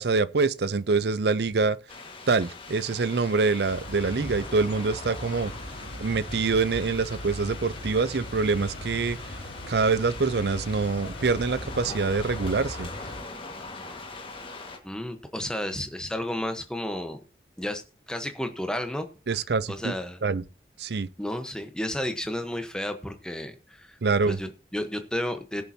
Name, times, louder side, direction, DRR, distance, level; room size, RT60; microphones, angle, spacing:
voice 1, 0.0-1.8 2.3-5.5 6.0-9.2 9.7-12.9 19.3-19.9 20.2-20.4 20.8-21.1 24.0-24.4, right 4 dB, 70° right, 0.6 m, -25 dB
sound 1, 1.9-14.8, left 3 dB, 30° left, 1.7 m, -42 dB
sound 2, 3.7-13.2, left 1 dB, 85° left, 4.3 m, -39 dB
voice 2, 14.8-17.2 17.6-17.8 18.1-19.4 19.7-20.2 21.2-24.0 24.2-25.6, left 1 dB, 5° left, 1.1 m, -32 dB
20.0 x 6.9 x 2.8 m
head